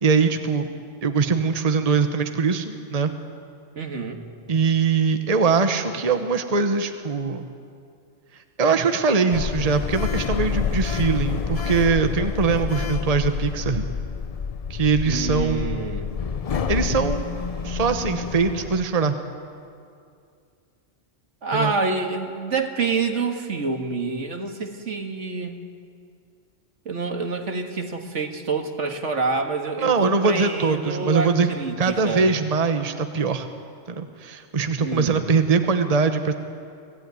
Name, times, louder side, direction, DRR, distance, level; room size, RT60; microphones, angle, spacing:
voice 1, 0.0-0.7 1.0-3.1 4.5-7.5 8.6-13.9 14.7-15.8 16.7-17.2 17.6-19.1 21.5-21.7 29.8-31.5 31.8-33.5 33.9-36.3, right 5 dB, 35° right, 7 dB, 1.1 m, -22 dB
voice 2, 3.8-4.2 15.1-16.1 21.4-25.6 26.9-32.3 34.8-35.3, right 4 dB, 70° right, 4 dB, 2.1 m, -27 dB
Sliding door, 9.3-18.9, left 6 dB, 45° left, 0.5 m, -28 dB
25.0 x 16.5 x 9.5 m, 2.4 s
omnidirectional pair, 1.3 m